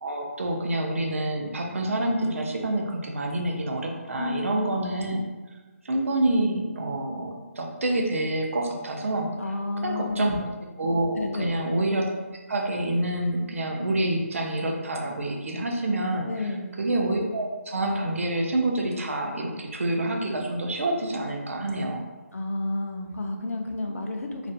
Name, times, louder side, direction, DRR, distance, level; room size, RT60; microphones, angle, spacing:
voice 1, 0.0-5.2 5.8-9.3 9.8-10.4 10.8-12.1 12.5-16.3 16.8-22.0, right 1 dB, 65° right, 1 dB, 0.5 m, -27 dB
voice 2, 4.2-4.5 9.4-10.3 11.2-11.5 16.3-16.7 22.3-24.5, left 2 dB, 75° left, 3 dB, 0.4 m, -31 dB
2.4 x 2.1 x 2.6 m, 1.3 s
hypercardioid pair, 170°, 8 cm